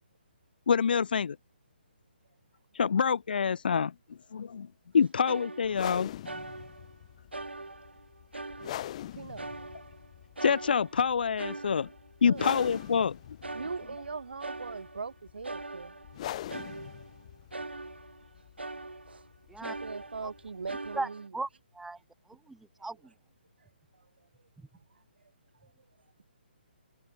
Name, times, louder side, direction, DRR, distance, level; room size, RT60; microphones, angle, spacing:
voice 1, 0.7-1.4 2.8-3.9 4.3-4.7 4.9-6.1 10.4-11.9 12.2-13.2, left 6 dB, 60° left, 0.5 m, -26 dB
sound 1, 5.2-6.0 6.2-7.0 7.3-9.1 9.4-10.1 10.4-13.1 13.4-15.1 15.4-18.3 18.6-19.3 19.6-21.3, right 2 dB, 90° right, 4.8 m, -42 dB
sound 2, 5.6-21.0, left 13 dB, 40° left, 3.8 m, -44 dB
voice 2, 9.1-9.5 12.2-12.5 13.5-15.9 19.1-19.2 19.6-21.3 25.6-25.7, right 4 dB, 70° right, 3.8 m, -40 dB
voice 3, 20.9-21.5 21.7-22.0 22.3-23.1, right 3 dB, 5° right, 2.4 m, -37 dB
figure-of-eight pair, 145°, 6 cm